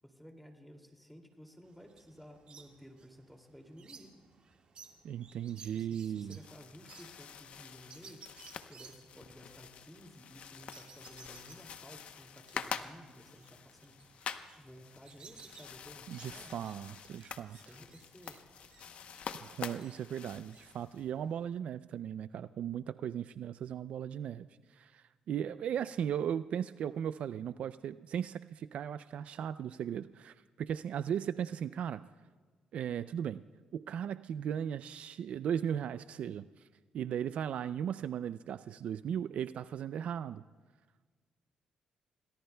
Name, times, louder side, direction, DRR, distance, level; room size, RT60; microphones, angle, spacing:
voice 1, 0.0-4.1 5.7-8.4 8.7-14.0 14.6-16.7 17.5-18.4, equal, ahead, 3 dB, 2.5 m, -55 dB
sound 1, 1.6-21.4, right 5 dB, 50° right, 1.8 m, -59 dB
voice 2, 5.0-6.4 16.1-17.6 19.4-24.5 24.7-32.0 32.7-33.4 33.7-36.5 36.9-40.4, right 9 dB, 65° right, 14 dB, 0.4 m, -37 dB
sound 2, 6.2-21.0, left 7 dB, 60° left, 0.8 m, -47 dB
27.5 x 19.5 x 2.3 m, 1.4 s
cardioid pair, 100°, 2 cm